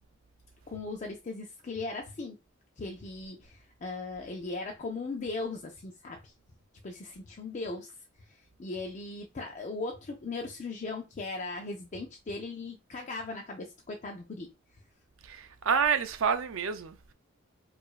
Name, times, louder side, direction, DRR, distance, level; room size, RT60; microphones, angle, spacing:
voice 1, 0.7-2.4 2.8-6.3 6.8-7.9 8.2-14.5, left 3 dB, 40° left, 0.5 m, -38 dB
voice 2, 15.2-17.1, right 6 dB, 75° right, 0.5 m, -28 dB
4.7 x 2.5 x 2.4 m
head